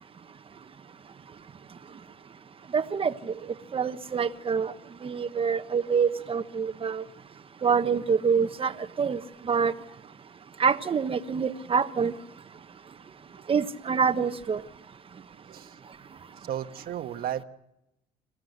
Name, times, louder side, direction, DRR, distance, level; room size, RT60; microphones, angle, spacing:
voice 1, 2.7-3.3 3.7-4.7 5.0-7.0 7.6-8.7 9.0-9.7 10.6-12.1 13.5-14.6, right 6 dB, 35° right, 10 dB, 1.2 m, -26 dB
voice 2, 15.5-15.8 16.3-17.4, right 10 dB, 60° right, 8 dB, 1.4 m, -35 dB
27.0 x 15.5 x 8.1 m, 0.87 s
cardioid pair, 110°, 17 cm